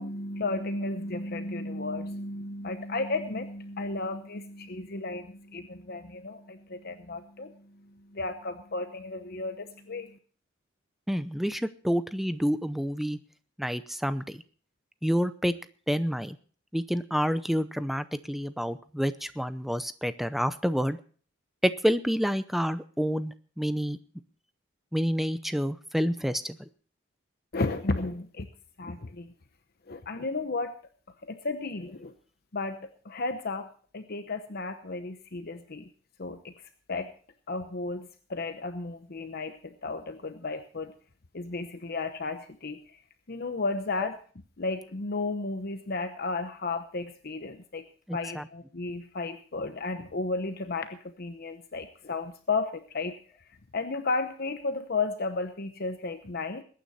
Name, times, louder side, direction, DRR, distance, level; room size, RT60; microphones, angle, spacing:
voice 1, 0.0-10.2 27.5-28.5 28.8-29.3 29.9-30.7 31.2-32.1 32.5-33.7 33.9-35.9 36.2-36.5 36.9-37.1 37.5-40.9 41.3-43.0 43.3-44.2 44.6-47.8 48.1-53.2 53.7-56.6, left 3 dB, 50° left, 8 dB, 0.9 m, -33 dB
voice 2, 11.1-13.2 13.6-14.4 15.0-15.5 15.9-16.4 16.7-21.0 21.6-24.0 24.9-26.7 48.1-48.5, equal, ahead, 12 dB, 0.6 m, -28 dB
21.0 x 9.5 x 4.2 m, 0.42 s
head